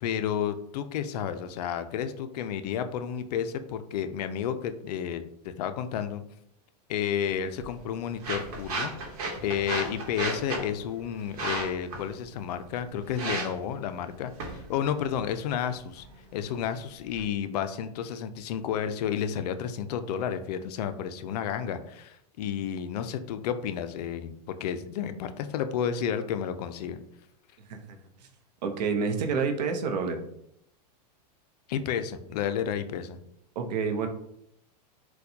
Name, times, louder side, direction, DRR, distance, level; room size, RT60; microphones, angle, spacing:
voice 1, 0.0-6.2 6.9-8.9 9.4-16.0 16.3-27.0 31.7-33.2, left 8 dB, 70° left, 10 dB, 0.4 m, -31 dB
sound 1, 7.3-17.2, right 3 dB, 60° right, 1.0 m, -37 dB
voice 2, 28.6-30.2 33.6-34.1, right 5 dB, 80° right, 5 dB, 0.6 m, -28 dB
4.2 x 2.2 x 2.7 m, 0.74 s
supercardioid pair, 140°, 21 cm